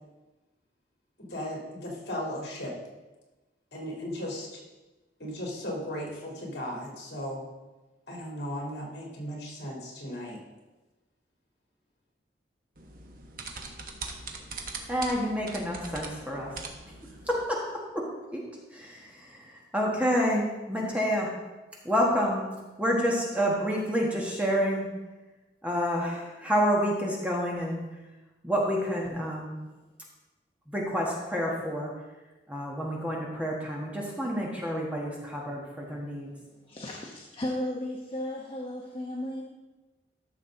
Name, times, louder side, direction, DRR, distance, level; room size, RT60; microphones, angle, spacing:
voice 1, 1.2-2.7 3.7-4.6 5.2-7.5 8.1-10.4, equal, 65° left, -2 dB, 3.3 m, -36 dB
sound 1, 12.8-17.4, right 4 dB, 50° right, 1.1 m, -41 dB
voice 2, 14.9-16.9 17.2-18.4 18.7-21.3 21.8-22.4 22.8-24.9 25.6-27.8 28.4-29.6 30.7-31.9 32.5-36.3, equal, 5° right, -2 dB, 1.5 m, -29 dB
voice 3, 36.6-39.4, left 1 dB, 30° left, -2 dB, 1.0 m, -34 dB
13.0 x 6.6 x 3.8 m, 1.1 s
head